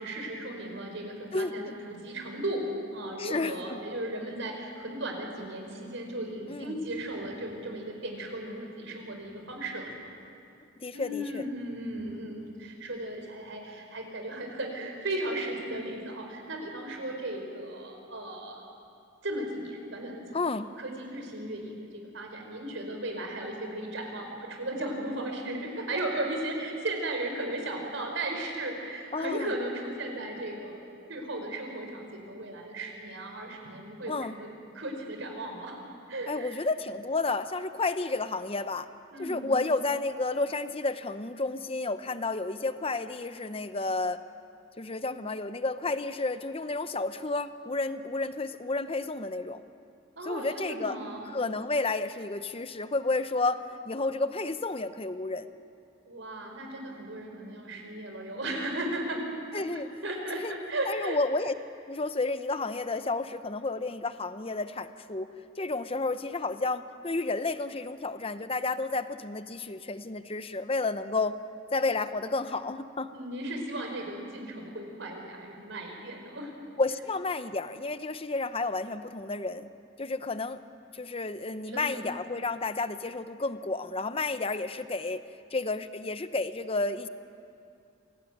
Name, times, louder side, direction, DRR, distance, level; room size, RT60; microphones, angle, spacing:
voice 1, 0.0-2.6 2.9-10.1 10.9-18.6 19.2-20.4 20.8-30.8 31.1-34.5 34.7-35.7 36.1-36.6 39.1-39.5 50.2-51.2 56.1-59.2 59.5-61.2 73.1-76.5 81.7-82.2, right 1 dB, 70° right, 3 dB, 4.8 m, -36 dB
voice 2, 1.3-1.7 3.2-3.8 6.5-6.7 10.8-11.5 20.3-20.7 29.1-29.5 34.1-34.3 36.3-38.9 39.2-44.2 44.8-49.6 50.2-51.0 51.3-55.5 59.5-59.9 60.3-60.5 60.8-61.5 61.9-71.4 71.7-73.1 76.8-79.7 80.0-80.6 80.9-85.2 85.5-87.1, left 3 dB, 30° left, 11 dB, 0.9 m, -31 dB
27.0 x 18.0 x 9.3 m, 2.5 s
head